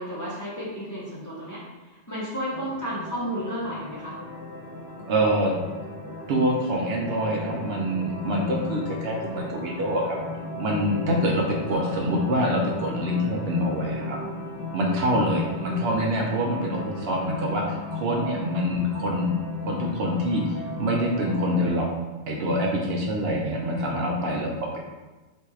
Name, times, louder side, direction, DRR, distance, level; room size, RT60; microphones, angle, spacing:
voice 1, 0.0-1.6 1.9-4.2 11.7-12.1 15.5-16.1, equal, 20° left, -8 dB, 0.7 m, -33 dB
sound 1, 2.5-21.7, left 2 dB, 20° right, 1.0 m, -35 dB
voice 2, 5.0-5.5 6.3-10.2 10.6-14.2 14.7-17.6 17.9-19.3 19.6-21.9 22.3-24.8, equal, 70° right, -1 dB, 0.8 m, -25 dB
4.3 x 2.7 x 2.3 m, 1.2 s
omnidirectional pair, 1.2 m